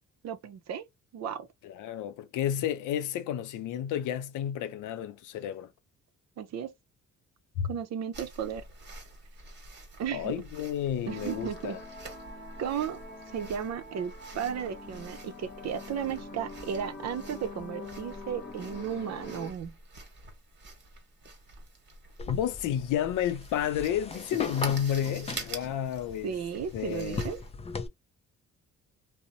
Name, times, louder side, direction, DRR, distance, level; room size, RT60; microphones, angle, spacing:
voice 1, 0.2-0.9 1.1-1.5 6.4-6.7 7.6-8.7 10.0-10.4 11.1-11.8 12.6-13.0 13.3-19.8 26.2-27.4, right 8 dB, 60° right, 0.6 m, -34 dB
voice 2, 1.6-5.7 7.6-7.7 10.1-11.8 22.3-26.3 26.7-27.2, left 10 dB, 85° left, 0.5 m, -31 dB
sound 1, 8.1-27.5, right 3 dB, 35° right, 1.2 m, -47 dB
sound 2, 11.1-19.5, left 2 dB, 40° left, 0.9 m, -44 dB
sound 3, 22.2-27.9, left 4 dB, 20° left, 0.4 m, -39 dB
2.6 x 2.0 x 2.7 m
cardioid pair, 90°, 30 cm